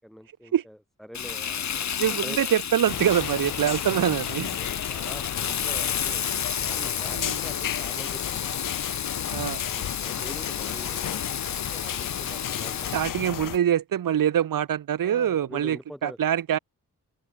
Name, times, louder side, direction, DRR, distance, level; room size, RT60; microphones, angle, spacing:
voice 1, 0.0-2.5 4.5-6.3 6.6-8.5 9.7-13.0 15.0-16.2, equal, ahead, 4.5 m, -44 dB
Frying (food), 1.1-13.1, left 8 dB, 55° left, 1.6 m, -32 dB
voice 2, 2.0-4.5 7.1-7.4 9.3-9.6 12.9-15.8 16.0-16.6, right 10 dB, 85° right, 1.6 m, -24 dB
sound 1, 2.9-13.6, left 11 dB, 75° left, 0.9 m, -33 dB
open air
wide cardioid pair, 140°, 32 cm